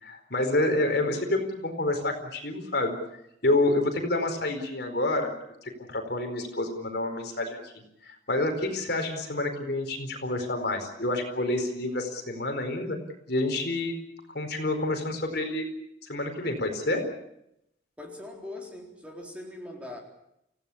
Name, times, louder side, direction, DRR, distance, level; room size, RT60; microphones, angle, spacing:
voice 1, 0.0-2.9 3.4-5.3 5.6-7.7 8.0-13.0 13.3-14.0 14.3-15.7 16.0-17.1, left 2 dB, 55° left, 5 dB, 4.5 m, -28 dB
voice 2, 18.0-20.0, left 1 dB, 5° right, 0 dB, 4.0 m, -41 dB
29.5 x 17.0 x 8.6 m, 0.79 s
head